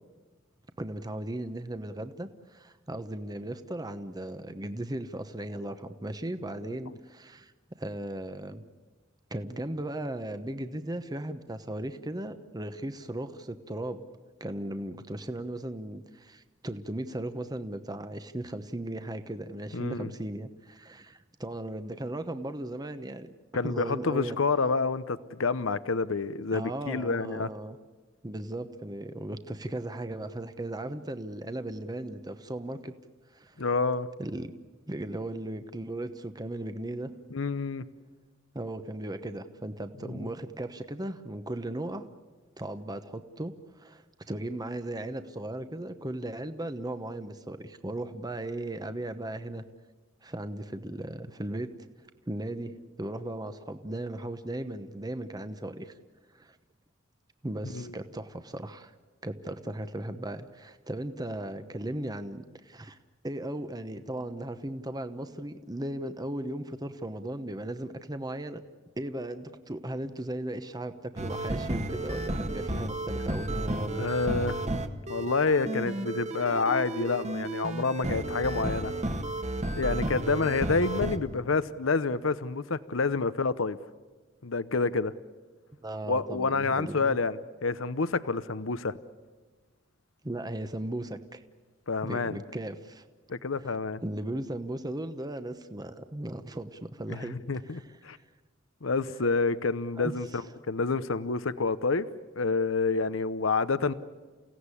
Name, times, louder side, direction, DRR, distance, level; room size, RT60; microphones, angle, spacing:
voice 1, 0.8-7.5 7.8-8.6 9.3-14.0 14.4-23.3 23.6-24.4 26.5-27.8 28.2-32.9 33.3-33.6 34.2-34.5 34.9-37.1 38.5-42.0 42.6-49.6 50.2-51.7 52.3-55.9 56.3-56.6 57.4-58.9 59.2-63.0 63.2-68.6 69.0-74.1 85.8-87.2 90.2-91.4 92.0-93.1 93.6-97.4 97.6-98.2 99.9-100.4, right 1 dB, 20° right, 9 dB, 1.0 m, -37 dB
voice 2, 19.7-20.1 23.5-27.5 33.6-34.1 37.3-37.8 40.0-40.2 57.7-57.9 74.0-74.6 75.1-78.9 79.8-83.8 84.4-85.1 86.1-89.0 91.9-92.4 93.3-94.0 97.1-98.2 98.8-100.4 100.7-102.1 102.4-103.9, left 4 dB, 75° left, 14 dB, 0.8 m, -28 dB
sound 1, 71.2-81.2, right 1 dB, 35° right, 1.6 m, -32 dB
29.5 x 17.0 x 9.9 m, 1.3 s
head